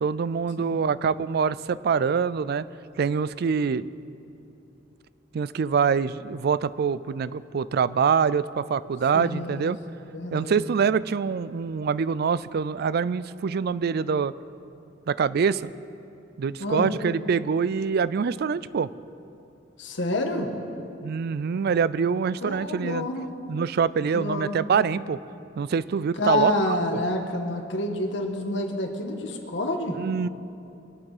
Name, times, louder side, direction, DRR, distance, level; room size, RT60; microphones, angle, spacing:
voice 1, 0.0-2.7 3.0-3.9 5.3-9.8 10.3-14.3 15.1-15.7 16.4-18.9 21.0-23.1 23.5-25.2 25.6-26.8 30.0-30.3, right 6 dB, 55° right, 18 dB, 0.4 m, -25 dB
voice 2, 9.1-9.7 10.1-10.6 16.6-16.9 19.8-20.5 22.4-23.3 24.1-24.6 26.1-30.0, left 2 dB, 70° left, 3 dB, 1.5 m, -28 dB
23.0 x 8.7 x 5.0 m, 2.8 s
head